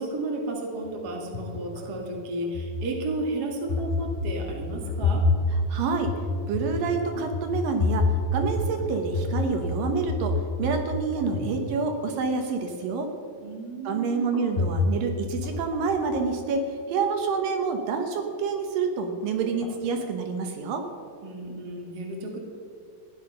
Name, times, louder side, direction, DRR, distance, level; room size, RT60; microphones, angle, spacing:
voice 1, 0.0-5.2 13.4-14.3 21.2-22.4, right 2 dB, 35° right, 1 dB, 1.8 m, -33 dB
sound 1, 0.8-2.1 2.4-3.3 3.7-10.9 11.2-11.6 14.3-15.1 15.4-16.3 19.4-19.7 20.0-20.1, left 3 dB, 20° left, 1.9 m, -28 dB
voice 2, 5.7-6.1 6.5-13.1 13.8-16.6 16.9-20.9, right 4 dB, 75° right, 4 dB, 2.7 m, -28 dB
15.5 x 10.5 x 5.5 m, 2.4 s
omnidirectional pair, 4.2 m